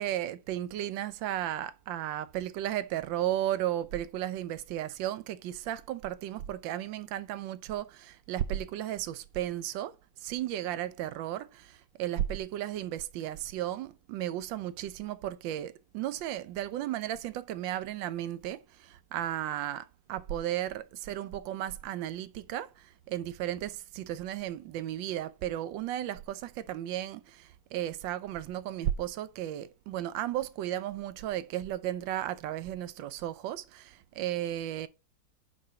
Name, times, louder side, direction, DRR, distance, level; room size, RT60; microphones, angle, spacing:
voice 1, 0.0-34.9, right 12 dB, 90° right, 1.3 m, -34 dB
4.8 x 4.3 x 5.6 m
omnidirectional pair, 2.0 m